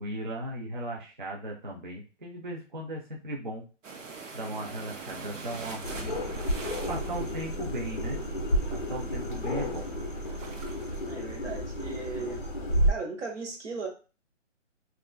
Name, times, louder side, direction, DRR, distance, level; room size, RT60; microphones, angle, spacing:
voice 1, 0.0-3.7 4.3-6.2 6.9-8.2 8.7-9.9, right 1 dB, 40° right, -1 dB, 0.5 m, -37 dB
sound 1, 3.8-11.1, right 4 dB, 85° right, 0.8 m, -44 dB
sound 2, 5.8-12.9, equal, 45° left, 0.4 m, -31 dB
voice 2, 11.1-12.4 12.9-13.9, right 4 dB, 70° right, 1 dB, 1.0 m, -37 dB
2.4 x 2.4 x 2.2 m, 0.34 s
hypercardioid pair, 175°, 37 cm